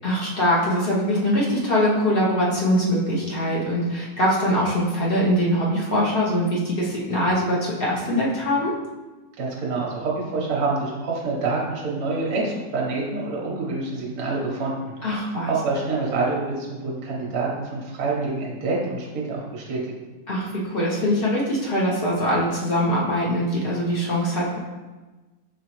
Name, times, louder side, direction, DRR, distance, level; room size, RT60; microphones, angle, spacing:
voice 1, 0.0-8.7 15.0-15.5 20.3-24.6, equal, 55° left, -5 dB, 0.6 m, -22 dB
voice 2, 9.4-19.9, right 3 dB, 60° right, -4 dB, 1.3 m, -27 dB
5.3 x 3.0 x 3.0 m, 1.2 s
omnidirectional pair, 1.9 m